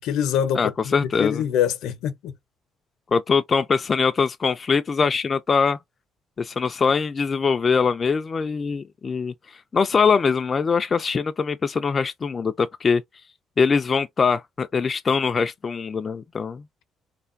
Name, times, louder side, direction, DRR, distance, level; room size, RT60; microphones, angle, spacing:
voice 1, 0.0-2.3, left 9 dB, 85° left, 0.7 m, -25 dB
voice 2, 0.5-1.4 3.1-5.8 6.4-13.0 13.6-16.6, left 5 dB, 30° left, 0.3 m, -22 dB
3.3 x 2.2 x 2.5 m
cardioid pair, 115°, 0 cm